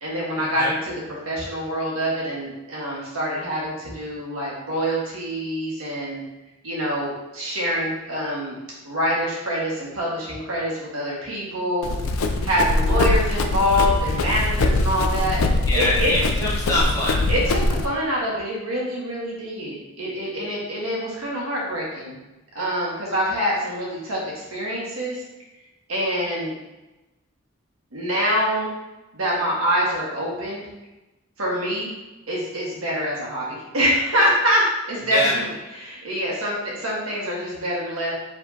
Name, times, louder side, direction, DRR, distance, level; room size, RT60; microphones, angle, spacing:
voice 1, 0.0-6.2 6.6-8.6 8.8-11.9 12.4-15.4 15.7-16.1 17.3-22.2 22.5-25.2 25.9-26.5 27.9-28.7 29.1-30.6 31.4-31.9 32.3-35.5 35.8-38.1, equal, 90° right, -4 dB, 1.5 m, -25 dB
Run, 11.8-17.9, left 2 dB, 90° left, 0.4 m, -22 dB
voice 2, 15.7-17.2 35.1-35.3, left 1 dB, 15° left, -6 dB, 1.0 m, -24 dB
4.8 x 3.5 x 2.7 m, 1.0 s
head